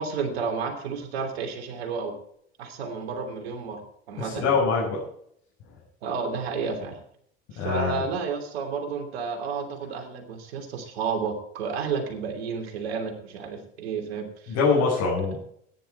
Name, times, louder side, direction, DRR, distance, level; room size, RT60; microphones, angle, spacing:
voice 1, 0.0-2.2 2.6-4.5 6.0-7.0 7.5-14.6, right 5 dB, 65° right, 5 dB, 3.0 m, -31 dB
voice 2, 4.2-5.0 7.6-8.0 14.5-15.4, left 4 dB, 55° left, -6 dB, 5.9 m, -24 dB
15.0 x 10.0 x 4.4 m, 0.66 s
figure-of-eight pair, 70°, 33 cm